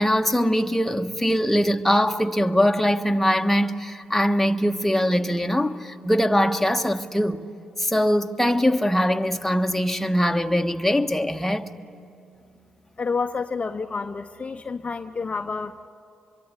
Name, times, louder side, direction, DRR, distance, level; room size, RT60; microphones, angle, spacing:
voice 1, 0.0-7.4 7.8-11.7, equal, 5° left, 1.4 m, -22 dB
Organ, 2.0-12.6, right 5 dB, 65° right, 5.0 m, -54 dB
voice 2, 13.0-15.9, left 4 dB, 35° left, 0.8 m, -29 dB
25.0 x 23.5 x 9.9 m
hypercardioid pair, 40°, 3 cm